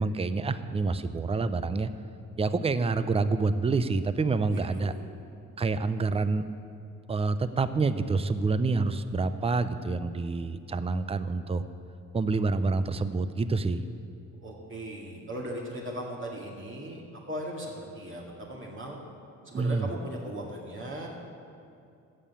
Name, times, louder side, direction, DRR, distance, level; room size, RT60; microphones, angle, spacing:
voice 1, 0.0-1.9 2.4-4.9 5.6-6.4 7.1-11.6 12.1-13.8 19.5-19.9, right 3 dB, 20° right, 12 dB, 0.6 m, -27 dB
voice 2, 4.4-5.0 14.4-19.0 19.4-21.1, right 1 dB, 40° right, -2 dB, 2.2 m, -38 dB
14.5 x 5.7 x 8.4 m, 2.5 s
cardioid pair, 90°, 30 cm